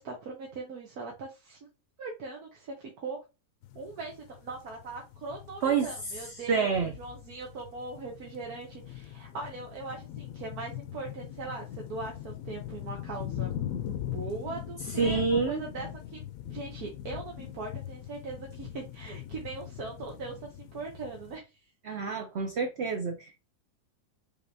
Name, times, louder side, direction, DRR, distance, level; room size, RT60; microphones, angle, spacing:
voice 1, 0.0-1.6 2.0-3.2 3.7-13.5 14.0-15.2 15.5-16.2 16.5-21.5, right 3 dB, 70° right, 1.6 m, -40 dB
sound 1, 3.6-21.4, left 11 dB, 70° left, 0.9 m, -41 dB
voice 2, 5.6-6.9 15.0-15.6 21.8-23.5, right 5 dB, 55° right, 0.8 m, -28 dB
5.5 x 3.5 x 2.7 m
omnidirectional pair, 1.7 m